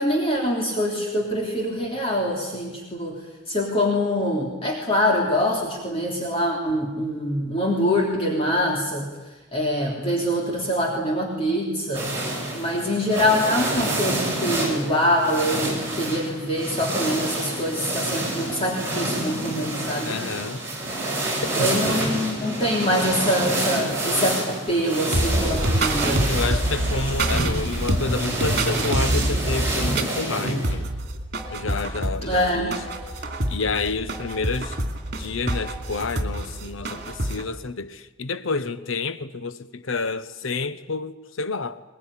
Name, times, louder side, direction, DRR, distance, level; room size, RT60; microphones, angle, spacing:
voice 1, 0.0-3.2 3.5-9.1 9.5-12.1 12.5-20.2 21.5-26.3 32.2-32.7, equal, 30° left, 3.4 m, -24 dB
sound 1, 11.9-30.8, right 1 dB, 15° right, 8.0 m, -28 dB
voice 2, 20.0-20.6 21.6-21.7 26.3-30.9 31.5-32.8 33.2-34.8 35.2-41.8, left 4 dB, 80° left, 1.0 m, -29 dB
sound 2, 25.1-37.4, right 1 dB, 50° right, 2.9 m, -26 dB
22.0 x 21.5 x 9.9 m
head